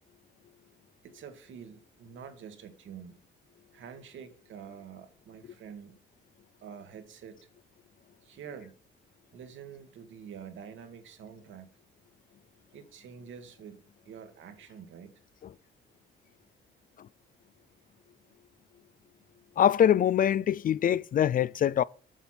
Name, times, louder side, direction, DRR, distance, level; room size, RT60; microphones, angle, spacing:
voice 1, 1.0-3.2 3.7-6.0 6.6-7.4 8.2-8.7 9.3-11.7 12.7-13.8 14.0-15.1, right 7 dB, 75° right, 1.7 m, -47 dB
voice 2, 19.6-21.8, left 10 dB, 45° left, 0.4 m, -23 dB
7.3 x 7.0 x 5.8 m
cardioid pair, 90°, 20 cm